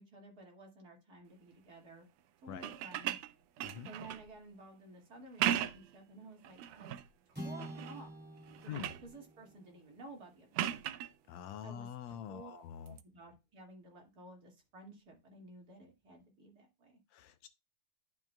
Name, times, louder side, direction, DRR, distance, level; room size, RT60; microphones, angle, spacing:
voice 1, 0.0-2.1 2.4-3.2 3.9-7.0 7.4-8.1 8.6-8.7 9.0-11.0 11.6-17.0, right 2 dB, 35° right, 2.5 m, -54 dB
sound 1, 2.5-4.3 5.2-6.0 6.4-7.1 7.6-8.1 8.4-9.1 10.5-11.1 12.9-13.0, right 11 dB, 90° right, 2.1 m, -37 dB
voice 2, 3.6-3.9 8.7-8.9 11.3-13.0 17.1-17.5, left 9 dB, 80° left, 1.7 m, -45 dB
sound 2, 7.3-11.8, equal, 5° right, 2.8 m, -50 dB
11.5 x 5.9 x 2.3 m
omnidirectional pair, 3.4 m